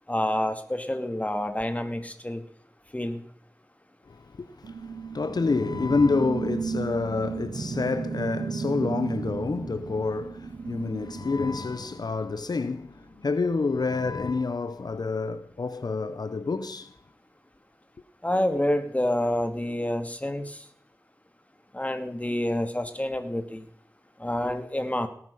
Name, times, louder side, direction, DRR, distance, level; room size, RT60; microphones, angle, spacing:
voice 1, 0.1-2.4 2.9-3.2 18.2-20.6 21.7-23.6 24.2-25.1, left 1 dB, 20° left, 2.5 m, -28 dB
voice 2, 4.1-16.9, left 4 dB, 85° left, 0.8 m, -28 dB
sound 1, 4.6-12.4, right 5 dB, 85° right, 0.9 m, -34 dB
18.0 x 11.0 x 5.6 m
wide cardioid pair, 40°, 7 cm